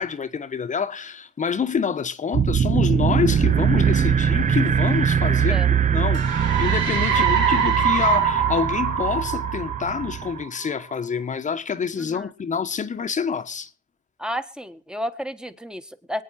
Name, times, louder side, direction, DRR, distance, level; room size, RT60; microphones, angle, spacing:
voice 1, 0.0-5.6 5.9-13.7, left 6 dB, 40° left, 1.1 m, -27 dB
sound 1, 2.3-10.4, right 7 dB, 40° right, 0.7 m, -22 dB
sound 2, 6.1-10.7, right 7 dB, 70° right, 3.2 m, -23 dB
voice 2, 12.0-12.3 14.2-16.2, equal, 5° right, 1.5 m, -32 dB
23.5 x 9.4 x 4.2 m
cardioid pair, 90°, 20 cm